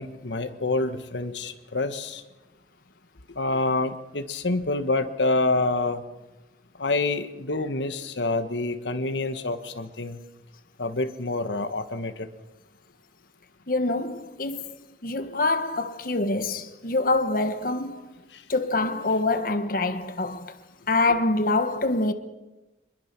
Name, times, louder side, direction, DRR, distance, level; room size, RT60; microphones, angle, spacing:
voice 1, 0.0-2.2 3.3-6.0 6.8-10.2 10.8-12.3, left 2 dB, 85° left, 1.5 m, -27 dB
voice 2, 13.7-14.8 15.0-18.1 18.5-20.5 20.9-22.1, left 2 dB, 50° left, 1.3 m, -25 dB
26.0 x 21.0 x 6.0 m
head